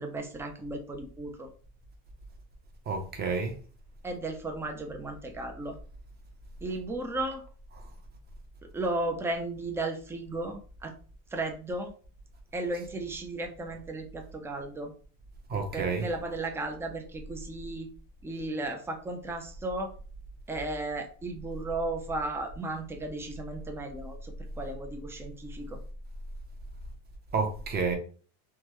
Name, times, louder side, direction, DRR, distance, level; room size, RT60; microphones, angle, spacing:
voice 1, 0.0-1.5 4.0-5.8 6.6-7.4 8.7-10.9 11.3-11.9 12.5-14.9 15.7-17.9 18.2-19.9 20.5-25.8, right 2 dB, 5° right, 0.3 m, -35 dB
voice 2, 2.9-3.6 15.5-16.1 27.3-27.9, right 4 dB, 25° right, 0.8 m, -29 dB
3.5 x 2.1 x 3.0 m
cardioid pair, 135°, 38 cm